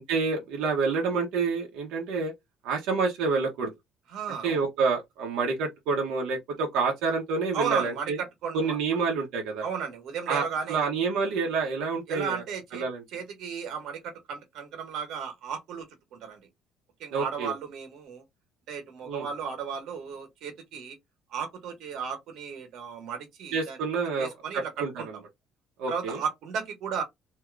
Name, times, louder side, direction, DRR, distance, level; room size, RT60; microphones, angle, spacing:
voice 1, 0.1-2.3 2.6-3.7 4.4-8.2 8.5-9.6 10.3-12.4 12.7-13.0 17.1-17.5 19.1-19.3 23.5-24.9 25.8-26.2, right 4 dB, 85° right, 0.8 m, -28 dB
voice 2, 4.1-4.6 7.5-8.8 9.6-10.9 12.1-12.8 13.1-15.8 16.1-16.5 17.0-18.2 18.7-21.0 21.3-23.8 24.2-25.2 25.9-27.0, right 6 dB, 60° right, 1.0 m, -34 dB
2.7 x 2.4 x 3.2 m
cardioid pair, 160°, 0 cm